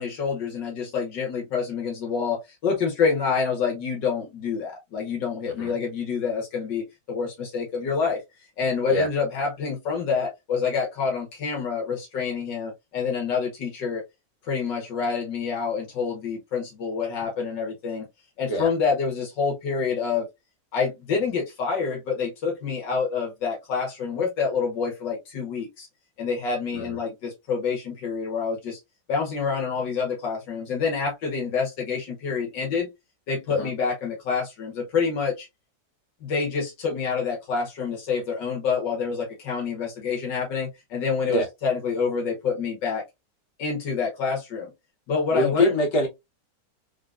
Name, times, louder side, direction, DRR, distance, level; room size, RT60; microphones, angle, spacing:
voice 1, 0.0-8.2 8.6-14.0 14.4-18.1 18.4-20.3 20.7-25.9 26.2-28.8 29.1-32.9 33.3-35.5 36.2-43.0 43.6-44.7 45.1-45.7, left 5 dB, 90° left, 1.9 m, -27 dB
voice 2, 45.3-46.1, left 1 dB, 75° left, 2.1 m, -24 dB
3.8 x 3.5 x 2.4 m
omnidirectional pair, 1.9 m